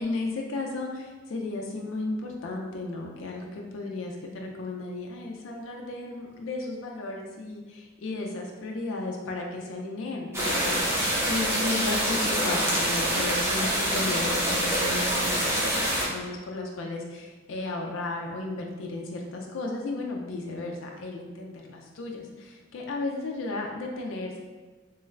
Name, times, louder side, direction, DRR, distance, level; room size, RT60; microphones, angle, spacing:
voice 1, 0.0-24.4, left 2 dB, 85° left, 0 dB, 0.4 m, -34 dB
the sound of medium stream in the winter forest - front, 10.3-16.0, equal, 15° right, 0.6 m, -26 dB
3.1 x 3.0 x 2.4 m, 1.3 s
head